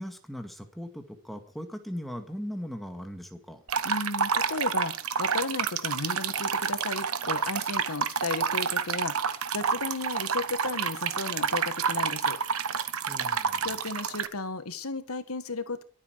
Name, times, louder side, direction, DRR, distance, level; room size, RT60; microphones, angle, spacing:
voice 1, 0.0-3.6 13.1-13.7, equal, ahead, 5 dB, 2.0 m, -39 dB
sound 1, 3.7-14.3, right 6 dB, 75° right, 1.1 m, -29 dB
voice 2, 3.8-12.4 13.6-15.8, left 3 dB, 80° left, 10 dB, 1.8 m, -34 dB
22.5 x 8.5 x 4.9 m, 0.39 s
head